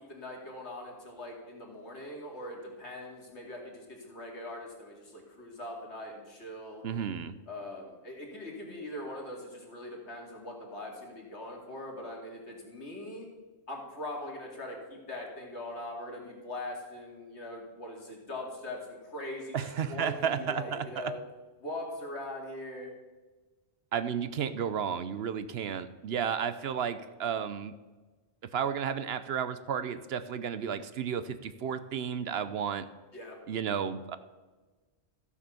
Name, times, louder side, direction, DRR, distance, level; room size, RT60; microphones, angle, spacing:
voice 1, 0.0-6.8 7.5-13.3 13.7-21.2 21.6-22.9 33.1-33.4, left 1 dB, 80° left, 0 dB, 2.7 m, -41 dB
voice 2, 6.8-7.3 19.5-21.1 23.9-27.7 28.5-32.9 33.5-34.2, right 7 dB, 70° right, 13 dB, 0.9 m, -32 dB
14.5 x 6.9 x 6.8 m, 1.3 s
omnidirectional pair, 1.1 m